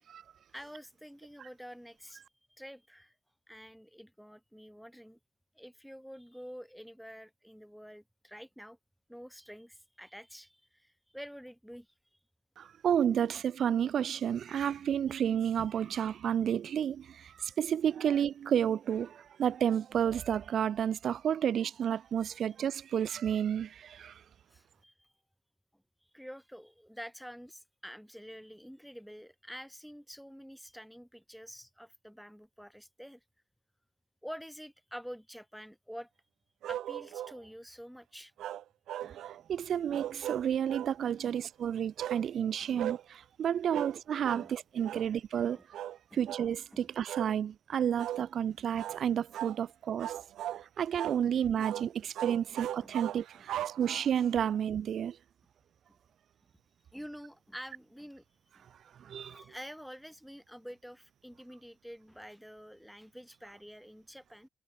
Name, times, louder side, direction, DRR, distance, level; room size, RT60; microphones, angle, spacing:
voice 1, 0.5-2.2 2.6-3.1 3.5-5.2 5.6-8.8 9.1-11.9 22.5-22.6 22.9-23.0 24.5-25.1 26.1-33.2 34.2-36.1 36.7-38.3 41.2-41.4 42.7-42.8 43.7-43.9 44.3-44.5 44.9-45.1 45.5-45.6 46.1-46.2 46.7-46.8 48.5-48.6 52.3-52.4 52.8-52.9 53.3-53.4 55.9-56.0 56.9-58.2 58.5-58.6 59.2-64.5, equal, ahead, 3.7 m, -48 dB
voice 2, 12.6-24.1 39.0-39.2 39.5-45.6 46.1-50.1 50.8-55.2 59.0-59.4, right 9 dB, 60° right, 0.4 m, -31 dB
sound 1, 36.6-37.4 38.4-39.4 39.9-40.9 42.0-42.2 42.8-43.0 43.7-44.0 44.2-44.5 44.8-45.1 45.7-46.0 46.3-46.5 47.1-47.3 48.0-48.2 48.7-49.0 49.3-49.6 50.0-50.6 51.0-51.2 51.6-51.9 52.1-54.3, right 12 dB, 75° right, 5.0 m, -38 dB
cardioid pair, 90°, 0 cm